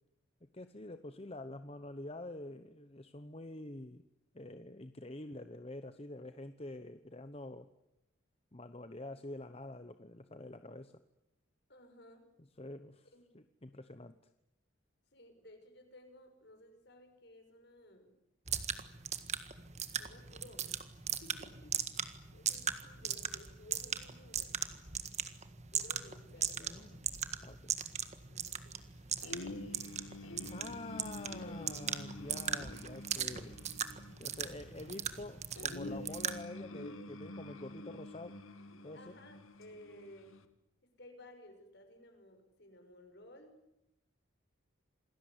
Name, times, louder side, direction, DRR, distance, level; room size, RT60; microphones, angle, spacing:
voice 1, 0.5-4.1 4.3-7.7 8.5-11.0 12.6-13.1 13.3-14.2 26.6-27.1 27.4-27.7 30.5-33.6 34.2-38.4 38.8-39.2, left 2 dB, 30° left, 10 dB, 1.0 m, -47 dB
voice 2, 11.7-12.3 13.1-13.3 15.1-18.1 20.0-22.1 22.3-24.6 25.7-26.9 28.3-28.8 31.3-31.6 38.9-40.4 40.8-43.5, left 1 dB, 55° left, 6 dB, 6.3 m, -57 dB
sound 1, 18.5-36.4, right 8 dB, 35° right, 1.7 m, -39 dB
sound 2, 29.2-40.5, left 1 dB, 85° left, 2.4 m, -48 dB
27.5 x 20.0 x 9.8 m, 0.84 s
head